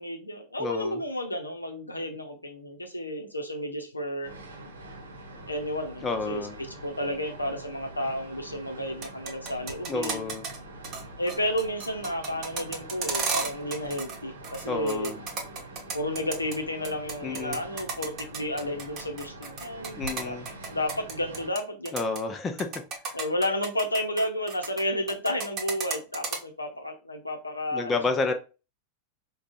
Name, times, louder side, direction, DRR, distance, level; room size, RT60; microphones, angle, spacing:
voice 1, 0.0-4.4 5.5-6.5 6.8-10.3 11.2-15.1 15.9-20.4 20.7-22.0 23.1-27.9, left 1 dB, 85° left, 0.7 m, -32 dB
voice 2, 0.6-1.0 6.0-6.6 9.9-10.5 14.6-15.2 17.2-17.6 19.9-20.5 21.9-22.7 23.1-23.2 27.7-28.3, left 3 dB, 20° left, 0.5 m, -30 dB
sound 1, 4.2-21.5, right 1 dB, 70° right, 0.8 m, -44 dB
sound 2, 8.9-10.6 10.8-11.0 11.3-14.2 14.4-16.6 16.8-21.6 21.9-22.2 22.6-24.8 25.1-26.4, right 5 dB, 35° right, 0.9 m, -33 dB
4.8 x 2.3 x 2.6 m
figure-of-eight pair, 90°, 0 cm